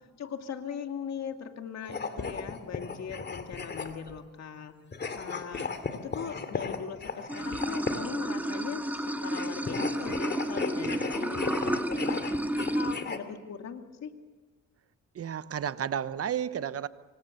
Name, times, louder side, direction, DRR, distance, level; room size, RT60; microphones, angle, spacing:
voice 1, 0.2-4.8 5.1-5.7 6.0-12.2 12.6-14.1, left 7 dB, 60° left, 5 dB, 2.4 m, -40 dB
sound 1, 1.8-4.2 4.9-8.2 9.3-13.2, left 4 dB, 35° left, 2.5 m, -36 dB
Water / Sink (filling or washing), 7.3-13.0, right 1 dB, 5° right, 1.8 m, -31 dB
voice 2, 15.1-16.9, right 9 dB, 50° right, 14 dB, 1.0 m, -32 dB
26.0 x 24.5 x 6.7 m, 1.4 s
cardioid pair, 90°, 30 cm